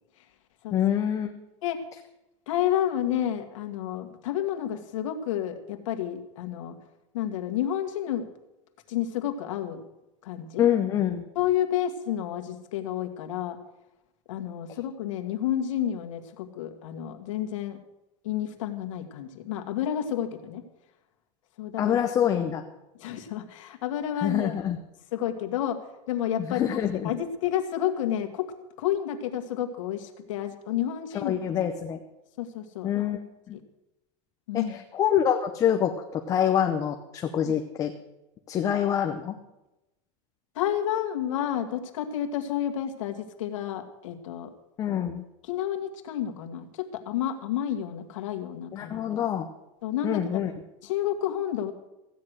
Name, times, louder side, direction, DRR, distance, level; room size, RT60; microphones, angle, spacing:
voice 1, 0.7-1.3 10.6-11.2 21.8-22.6 24.2-24.8 26.5-27.1 31.2-32.0 32.8-33.2 33.5-33.6 34.5-37.9 38.5-39.4 44.8-45.2 48.7-49.5 50.0-50.5, left 9 dB, 20° left, 5 dB, 0.7 m, -26 dB
voice 2, 2.5-6.8 7.1-8.3 8.9-9.8 10.2-10.7 11.4-13.6 14.3-17.8 18.2-20.6 21.6-22.0 23.0-24.6 25.1-25.8 26.1-31.3 32.4-32.9 34.5-34.8 40.6-44.5 45.4-48.9 49.8-50.4 50.8-51.7, left 10 dB, 90° left, 6 dB, 1.8 m, -30 dB
15.5 x 9.6 x 6.4 m, 0.97 s
supercardioid pair, 170°, 16 cm